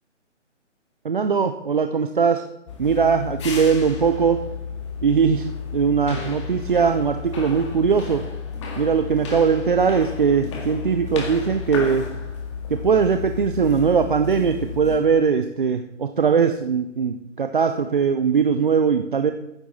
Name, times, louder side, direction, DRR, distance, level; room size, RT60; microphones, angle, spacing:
voice 1, 1.0-2.4 2.8-4.4 5.0-5.5 5.7-8.2 8.8-12.1 12.7-19.3, right 6 dB, 45° right, 7 dB, 0.6 m, -20 dB
sound 1, 2.7-15.0, left 5 dB, 25° left, 1.9 m, -32 dB
13.0 x 10.0 x 4.1 m, 0.86 s
hypercardioid pair, 160°, 37 cm